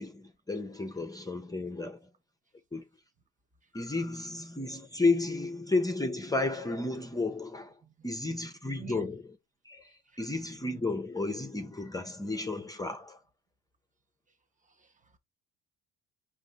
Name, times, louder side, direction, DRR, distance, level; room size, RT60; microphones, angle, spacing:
voice 1, 0.0-2.1 2.7-2.8 3.7-9.2 9.6-13.2, left 3 dB, 10° left, 0.7 m, -32 dB
voice 2, 8.8-9.1 9.8-10.2 14.6-15.2, right 8 dB, 25° right, 0.8 m, -50 dB
5.0 x 2.5 x 3.9 m
supercardioid pair, 80°, 31 cm